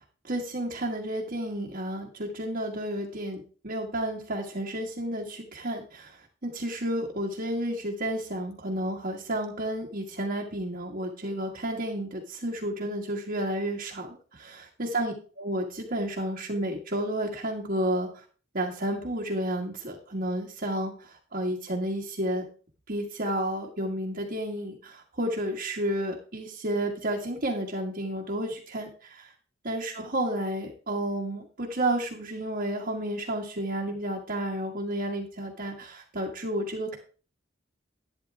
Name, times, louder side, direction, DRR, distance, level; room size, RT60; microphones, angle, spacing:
voice 1, 0.2-18.2 18.5-22.4 22.9-29.2 29.6-37.0, right 1 dB, 50° right, -4 dB, 1.8 m, -31 dB
12.0 x 9.7 x 3.6 m, 0.39 s
head